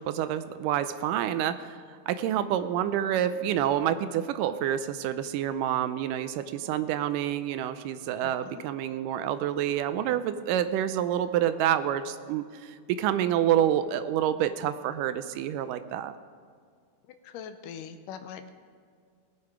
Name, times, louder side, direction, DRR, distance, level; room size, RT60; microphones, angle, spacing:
voice 1, 0.0-1.8 2.1-16.2, right 10 dB, 85° right, 11 dB, 2.2 m, -28 dB
voice 2, 8.2-8.7 17.1-18.5, left 7 dB, 85° left, 8 dB, 2.3 m, -42 dB
19.5 x 8.5 x 4.9 m, 2.1 s
omnidirectional pair, 3.8 m